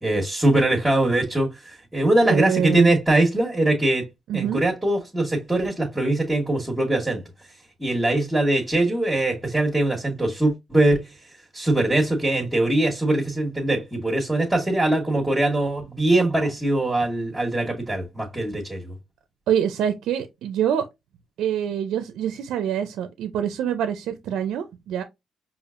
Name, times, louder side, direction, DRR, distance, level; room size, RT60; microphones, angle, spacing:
voice 1, 0.0-4.1 4.3-7.2 7.8-11.0 11.5-18.9, right 1 dB, 10° right, 1.2 m, -22 dB
voice 2, 2.3-2.9 4.3-4.6 19.5-20.9 21.4-25.0, right 9 dB, 80° right, 0.4 m, -25 dB
5.0 x 2.4 x 2.4 m
cardioid pair, 90°, 0 cm